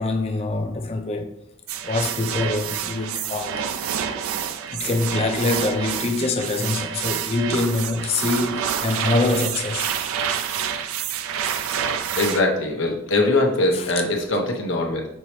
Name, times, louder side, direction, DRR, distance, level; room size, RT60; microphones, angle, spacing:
voice 1, 0.0-1.4 1.8-3.6 4.7-9.9 13.7-13.9, left 2 dB, 30° left, 0.4 m, -24 dB
sound 1, 1.7-12.4, right 8 dB, 90° right, 0.3 m, -28 dB
voice 2, 12.2-15.1, left 2 dB, 60° left, 0.8 m, -22 dB
5.4 x 3.0 x 3.0 m
head